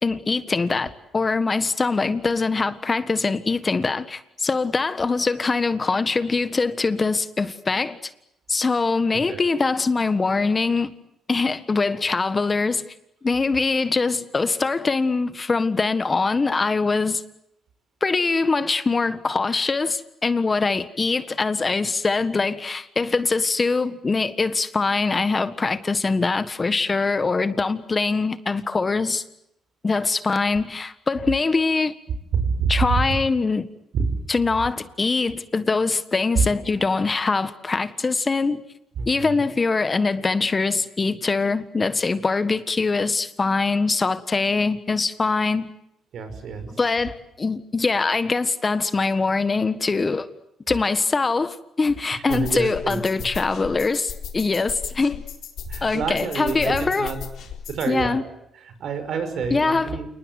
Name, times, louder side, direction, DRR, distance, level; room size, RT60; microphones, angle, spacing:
voice 1, 0.0-8.0 8.5-10.9 11.3-12.8 13.2-17.2 18.0-29.2 29.8-31.9 32.7-33.7 34.3-38.6 39.1-45.7 46.8-50.3 50.7-55.2 55.8-57.1 57.9-58.2 59.5-59.9, left 4 dB, 30° left, 1.5 m, -23 dB
voice 2, 32.3-33.2 33.9-34.1 36.3-36.5 39.0-39.4 46.1-46.7 52.2-53.0 55.6-57.2 57.7-60.1, right 5 dB, 65° right, 5.7 m, -27 dB
sound 1, 52.3-58.0, left 7 dB, 70° left, 4.1 m, -37 dB
28.5 x 20.0 x 9.7 m
cardioid pair, 90°, 0 cm